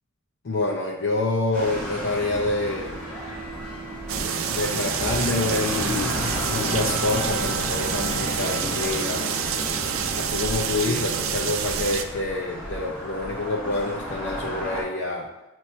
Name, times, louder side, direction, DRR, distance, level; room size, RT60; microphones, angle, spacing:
voice 1, 0.4-3.0 4.5-9.3 10.1-15.3, left 2 dB, 60° left, -2 dB, 0.6 m, -27 dB
sound 1, 1.5-14.8, left 1 dB, 5° left, 2.2 m, -33 dB
sound 2, 2.0-11.4, right 4 dB, 50° right, 0.9 m, -39 dB
sound 3, 4.1-12.0, right 7 dB, 75° right, 0.5 m, -28 dB
7.4 x 3.1 x 4.3 m, 0.98 s
head